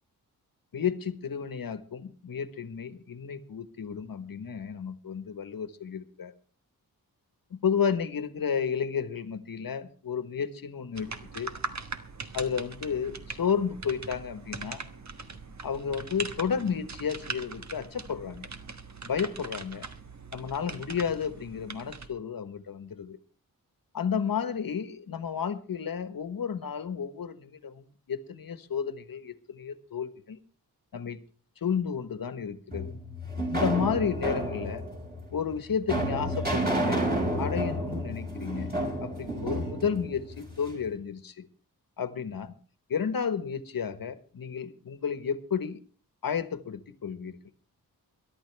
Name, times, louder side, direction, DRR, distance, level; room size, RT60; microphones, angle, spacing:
voice 1, 0.7-6.3 7.5-11.5 12.3-14.9 15.6-18.5 19.1-19.9 20.3-23.2 23.9-30.4 30.9-31.2 31.6-32.9 33.5-34.8 35.3-37.1 37.3-38.7 39.0-41.5 42.0-42.5 42.9-45.8 46.2-47.4, left 7 dB, 70° left, 12 dB, 1.3 m, -32 dB
sound 1, 10.9-22.1, right 4 dB, 50° right, 1.3 m, -41 dB
sound 2, 32.7-40.8, right 1 dB, 25° right, 5.9 m, -30 dB
22.5 x 11.5 x 3.4 m, 0.40 s
wide cardioid pair, 95°, 36 cm